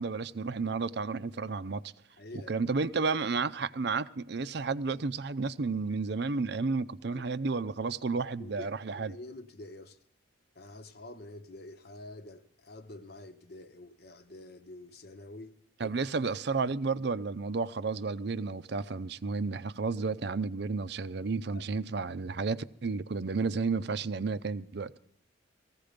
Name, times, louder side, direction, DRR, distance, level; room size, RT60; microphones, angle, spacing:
voice 1, 0.0-1.8 2.5-9.2 15.8-25.0, right 4 dB, 55° right, 0.5 m, -32 dB
voice 2, 2.2-2.5 7.1-7.2 7.8-7.9 8.4-10.0 10.5-16.3 21.5-21.7, left 2 dB, 55° left, 1.0 m, -48 dB
18.0 x 15.0 x 5.1 m
head